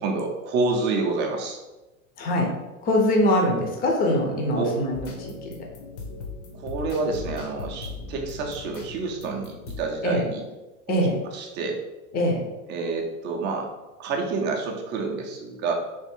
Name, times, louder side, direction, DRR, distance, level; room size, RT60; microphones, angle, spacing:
voice 1, 0.0-1.6 4.5-4.7 6.5-10.4 11.3-11.8 12.7-13.7 14.0-15.7, right 3 dB, 25° right, 1 dB, 0.5 m, -28 dB
voice 2, 2.2-2.5 2.8-5.5 10.0-10.2 10.9-11.2 12.1-12.4, left 1 dB, 20° left, 0 dB, 0.6 m, -23 dB
sound 1, 4.9-10.1, left 3 dB, 50° left, 0.8 m, -38 dB
3.5 x 2.4 x 4.3 m, 1.1 s
supercardioid pair, 140°, 43 cm